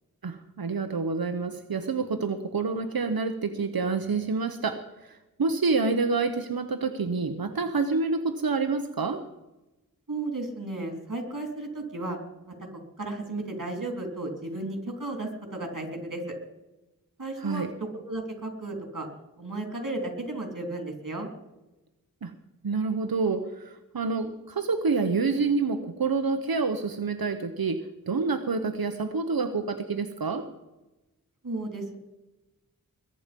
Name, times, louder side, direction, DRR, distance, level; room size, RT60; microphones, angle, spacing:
voice 1, 0.2-9.2 17.4-17.7 22.2-22.3 22.6-30.5, right 4 dB, 85° right, 7 dB, 0.9 m, -28 dB
voice 2, 10.1-12.2 13.0-16.3 17.2-19.1 19.4-21.3 31.4-32.0, right 2 dB, 60° right, 4 dB, 3.4 m, -34 dB
21.5 x 9.0 x 5.3 m, 1.0 s
wide cardioid pair, 55°, 35 cm